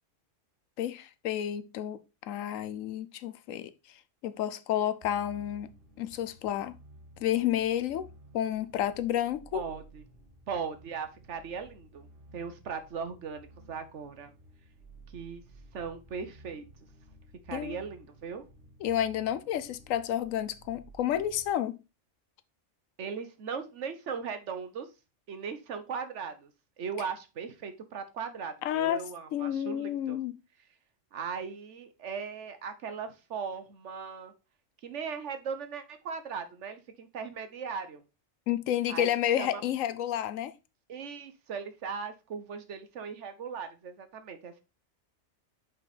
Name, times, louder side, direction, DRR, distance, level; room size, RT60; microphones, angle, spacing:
voice 1, 0.8-3.7 4.2-5.7 6.0-6.8 7.2-8.1 8.3-9.6 17.5-17.8 18.8-21.8 28.6-29.1 29.3-30.3 38.5-40.5, left 11 dB, 85° left, 1.0 m, -30 dB
sound 1, 5.0-21.5, right 1 dB, 45° right, 1.5 m, -55 dB
voice 2, 9.5-10.0 10.5-14.3 15.1-15.4 15.7-16.6 17.5-18.4 23.0-24.9 25.3-26.5 26.8-30.2 31.1-34.3 34.8-38.0 38.9-39.1 39.4-39.6 40.9-44.6, right 6 dB, 65° right, 1.2 m, -38 dB
5.6 x 5.1 x 4.1 m
omnidirectional pair, 1.3 m